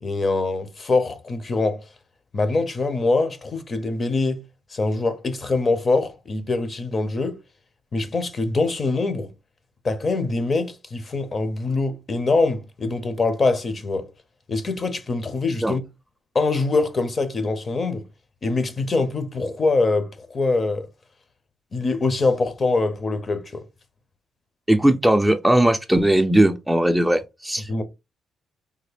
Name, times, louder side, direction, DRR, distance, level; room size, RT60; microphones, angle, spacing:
voice 1, 0.0-1.8 2.3-4.4 4.7-7.4 7.9-9.3 9.8-14.1 14.5-15.8 16.3-18.0 18.4-20.9 21.7-23.6 27.7-27.8, left 3 dB, 35° left, 0.6 m, -23 dB
voice 2, 24.7-27.7, right 1 dB, 5° right, 0.3 m, -18 dB
3.3 x 2.1 x 3.3 m
cardioid pair, 90°, 0 cm